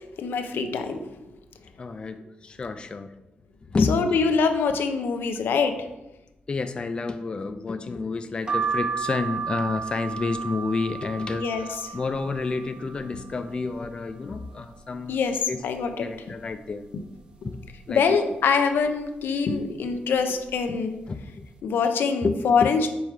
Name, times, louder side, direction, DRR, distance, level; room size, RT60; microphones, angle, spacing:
voice 1, 0.2-1.1 3.9-5.8 11.3-11.6 15.1-16.1 17.9-20.9 21.6-22.9, left 5 dB, 85° left, 7 dB, 0.6 m, -24 dB
voice 2, 1.8-3.2 3.7-4.1 6.5-15.2 15.5-15.6 16.0-16.9 17.5-18.2 21.1-21.5 22.2-22.7, left 3 dB, 30° left, 9 dB, 0.3 m, -29 dB
sound 1, 8.5-14.1 14.6-15.4 15.8-17.2 17.6-18.0 18.8-19.1 19.9-20.1 20.4-20.6, right 5 dB, 30° right, 0.6 m, -34 dB
5.4 x 4.5 x 4.7 m, 0.95 s
wide cardioid pair, 145°, 4 cm